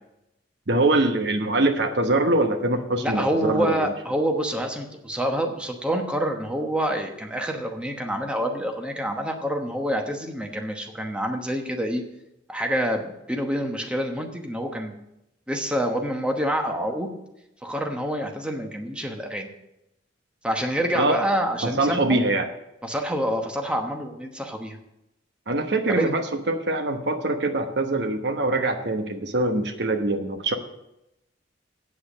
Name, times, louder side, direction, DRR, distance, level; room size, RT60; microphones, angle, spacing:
voice 1, 0.7-3.9 20.9-21.2 21.6-22.5 25.5-30.6, right 2 dB, 60° right, 6 dB, 1.0 m, -23 dB
voice 2, 3.0-12.0 12.5-14.9 15.5-17.1 17.6-19.5 20.4-22.2 22.8-24.8 25.9-26.1, equal, 5° right, 3 dB, 1.0 m, -27 dB
8.5 x 7.7 x 7.3 m, 0.87 s
head